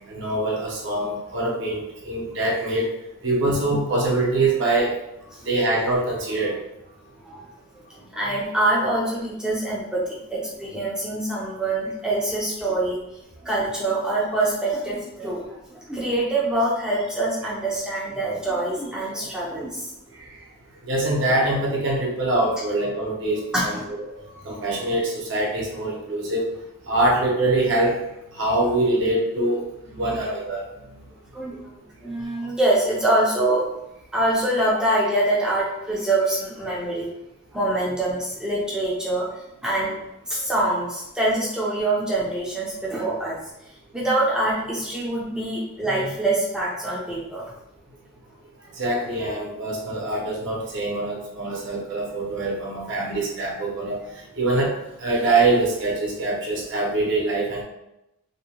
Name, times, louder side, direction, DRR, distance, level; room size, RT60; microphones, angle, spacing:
voice 1, 0.1-2.9 3.2-4.9 5.4-6.5 20.8-23.8 24.2-26.5 26.9-28.0 28.3-29.6 30.0-30.7 48.8-54.0 54.4-54.7 55.0-57.6, right 2 dB, 60° right, -3 dB, 0.6 m, -24 dB
voice 2, 7.9-13.0 13.4-19.9 23.5-23.9 29.9-30.3 30.8-31.0 31.3-31.7 32.0-33.6 34.1-37.1 37.5-43.4 43.9-47.5, right 1 dB, 5° right, -7 dB, 0.4 m, -25 dB
2.6 x 2.1 x 2.8 m, 0.88 s
head